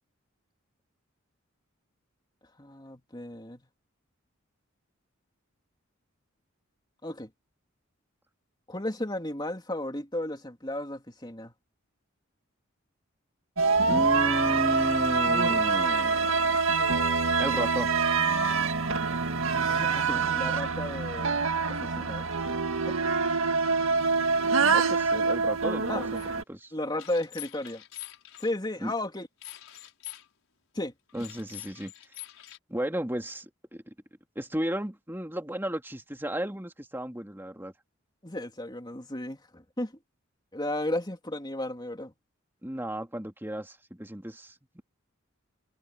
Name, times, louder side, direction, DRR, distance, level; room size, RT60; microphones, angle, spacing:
voice 1, 2.6-3.6 7.0-7.3 8.7-11.5 19.6-22.3 22.8-23.0 25.9-26.1 26.7-27.8 28.4-29.3 30.7-30.9 38.2-39.9 40.5-42.1, left 1 dB, 20° left, 3.3 m, -34 dB
sound 1, 13.6-26.4, right 4 dB, 80° right, 1.9 m, -25 dB
voice 2, 13.9-16.5 17.4-18.0 24.4-26.2 26.5-26.7 28.8-28.9 31.1-31.9 32.7-33.9 34.4-37.7 42.6-44.8, equal, 10° right, 2.3 m, -34 dB
sound 2, 18.4-22.4, right 4 dB, 55° right, 6.9 m, -42 dB
sound 3, 26.1-26.3 27.0-28.5 29.4-30.3 31.1-32.6, left 14 dB, 85° left, 5.6 m, -44 dB
head